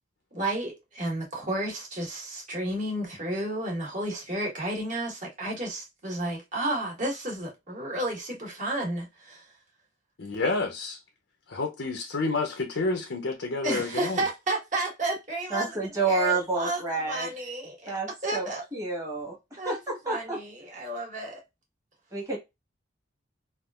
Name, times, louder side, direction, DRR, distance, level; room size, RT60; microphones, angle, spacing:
voice 1, 0.3-9.4 13.6-16.8 17.1-18.0 18.2-18.6 19.6-19.8 20.0-21.4, right 1 dB, 40° right, 1.4 m, -32 dB
voice 2, 10.2-11.0 11.5-14.2, left 3 dB, 70° left, 0.6 m, -29 dB
voice 3, 15.5-17.3 17.9-18.4 18.7-19.4 19.6-20.4 22.1-22.4, right 3 dB, 15° right, 1.3 m, -29 dB
3.5 x 2.4 x 2.3 m
head